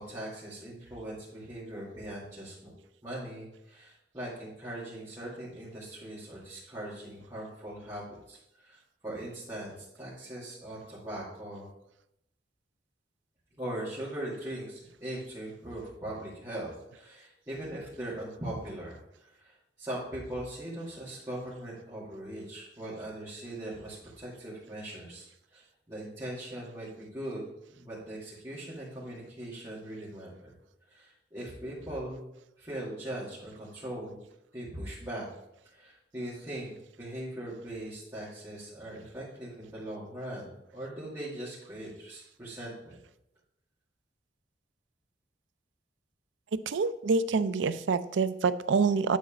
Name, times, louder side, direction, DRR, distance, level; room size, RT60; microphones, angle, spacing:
voice 1, 0.0-2.7 3.0-11.7 13.6-30.3 30.9-32.3 32.6-34.2 34.5-35.3 35.7-43.0, right 1 dB, 20° right, -11 dB, 2.3 m, -40 dB
voice 2, 46.7-49.2, right 4 dB, 90° right, 13 dB, 0.4 m, -26 dB
9.4 x 4.1 x 4.9 m, 0.83 s
head